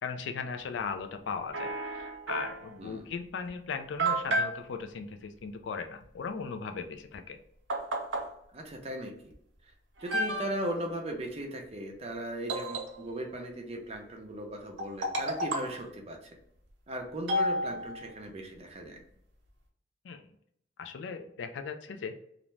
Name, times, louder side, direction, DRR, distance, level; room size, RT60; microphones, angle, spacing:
voice 1, 0.0-7.4 20.0-20.2 20.8-22.1, left 5 dB, 75° left, 7 dB, 0.3 m, -38 dB
sound 1, 1.5-2.7 3.5-3.6 4.0-4.6 7.1-7.2 7.7-8.3 9.3-9.4 10.0-10.8 12.5-13.3 14.8-15.8 17.3-18.2, right 1 dB, 90° right, 0.6 m, -32 dB
voice 2, 2.8-3.1 8.5-9.1 10.0-16.2 16.9-19.0, right 1 dB, 35° right, 2 dB, 0.5 m, -37 dB
2.5 x 2.1 x 3.1 m, 0.72 s
head